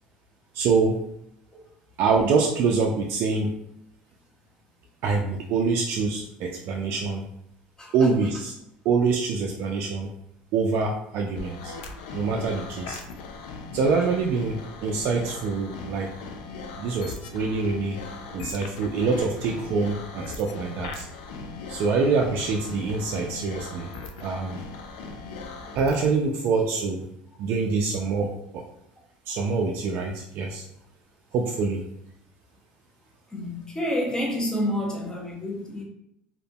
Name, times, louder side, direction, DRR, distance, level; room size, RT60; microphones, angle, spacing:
voice 1, 0.5-1.0 2.0-3.5 5.0-7.2 7.9-8.5 8.8-10.1 10.5-11.7 12.1-13.0 13.7-16.1 16.8-18.0 18.3-21.1 21.7-23.9 24.2-24.6 25.7-27.1 27.4-28.6 29.3-30.6 31.3-31.8, right 4 dB, 60° right, 0 dB, 0.3 m, -25 dB
sound 1, 11.3-26.1, left 4 dB, 85° left, 0.4 m, -39 dB
voice 2, 33.3-35.8, left 1 dB, 15° left, -1 dB, 0.8 m, -28 dB
2.8 x 2.5 x 2.2 m, 0.78 s
supercardioid pair, 90°, 4 cm